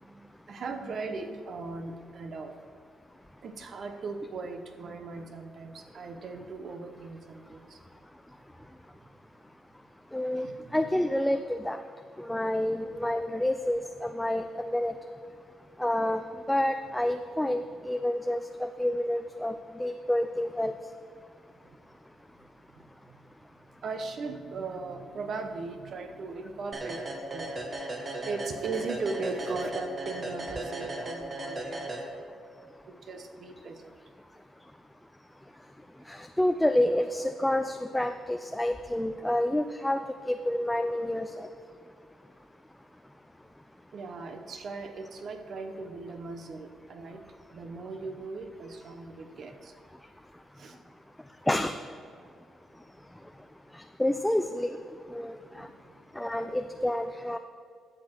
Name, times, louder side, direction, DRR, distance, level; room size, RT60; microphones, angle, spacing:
voice 1, 0.0-2.5 3.4-7.8 10.3-10.9 12.2-13.1 21.6-21.8 22.7-23.2 23.8-27.8 28.3-31.9 32.9-33.9 38.9-39.1 43.9-49.7 50.6-50.8 55.5-55.8, right 3 dB, 55° right, 6 dB, 1.0 m, -39 dB
voice 2, 10.1-10.5 10.7-11.8 12.2-15.0 15.8-16.2 16.5-19.5 19.8-20.7 36.1-40.0 40.3-41.5 51.5-51.7 53.7-54.8 55.1-55.7 56.2-57.4, left 1 dB, 5° left, 7 dB, 0.4 m, -28 dB
sound 1, 26.7-32.5, right 1 dB, 40° right, 1.5 m, -36 dB
12.0 x 7.6 x 4.6 m, 2.2 s
cardioid pair, 90°, 0 cm